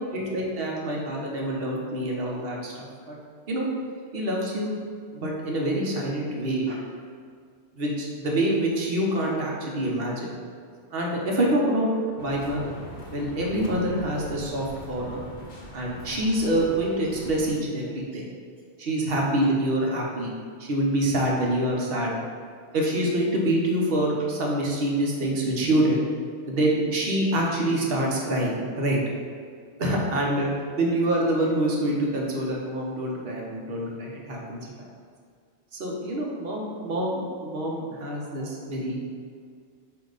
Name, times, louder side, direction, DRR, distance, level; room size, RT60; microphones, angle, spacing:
voice 1, 0.1-3.2 3.5-3.7 4.1-4.8 5.1-6.8 7.8-10.3 10.9-12.8 13.1-15.2 15.7-18.3 18.8-20.3 20.6-22.1 22.7-26.0 26.5-29.0 29.8-30.5 30.7-34.9 35.7-39.0, right 1 dB, 55° right, -2 dB, 1.2 m, -26 dB
sound 1, 12.2-17.5, left 1 dB, 45° left, 0.9 m, -42 dB
8.1 x 2.9 x 4.0 m, 2.1 s
omnidirectional pair, 1.2 m